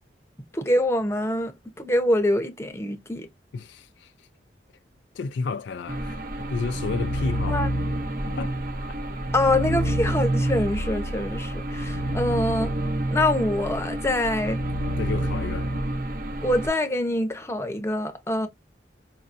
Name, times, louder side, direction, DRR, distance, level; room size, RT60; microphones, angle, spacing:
voice 1, 0.5-1.5 1.8-3.3 7.5-7.7 9.3-12.7 13.1-14.6 16.4-18.5, left 1 dB, 15° left, 0.7 m, -25 dB
voice 2, 3.5-4.1 5.2-7.6 8.3-8.5 9.1-9.2 11.9-12.1 14.9-15.7, left 4 dB, 70° left, 0.4 m, -32 dB
sound 1, 5.9-16.7, right 1 dB, 50° right, 0.7 m, -28 dB
4.9 x 2.7 x 2.5 m
head